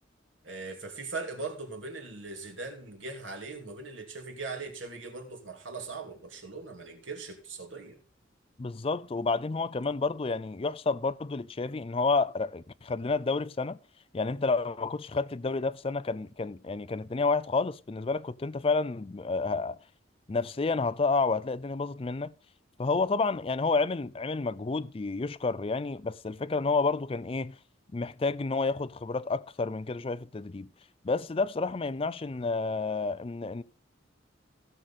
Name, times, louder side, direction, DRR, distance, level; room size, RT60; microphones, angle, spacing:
voice 1, 0.4-8.0, right 3 dB, 90° right, 2.7 m, -40 dB
voice 2, 8.6-13.8 14.1-19.8 20.3-22.3 22.8-27.6 27.9-30.7 31.0-33.6, left 3 dB, 30° left, 0.4 m, -30 dB
16.5 x 6.5 x 4.2 m
head